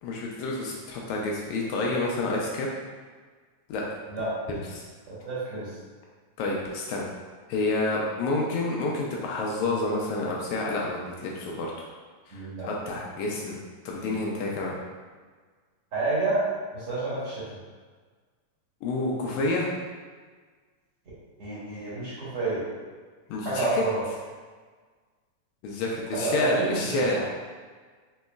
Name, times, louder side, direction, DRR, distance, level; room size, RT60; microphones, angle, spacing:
voice 1, 0.0-2.7 3.7-3.8 4.5-4.8 6.4-7.0 7.5-11.7 12.3-13.6 13.8-14.8 18.8-19.7 23.3-23.8 25.6-27.2, left 2 dB, 80° left, -2 dB, 1.9 m, -29 dB
voice 2, 4.1-4.5 5.1-5.7 12.3-12.7 15.9-16.4 16.7-17.5 21.4-22.7 23.4-24.0 26.1-27.2, right 2 dB, 55° right, -10 dB, 2.1 m, -29 dB
5.3 x 2.9 x 2.3 m, 1.5 s
omnidirectional pair, 3.5 m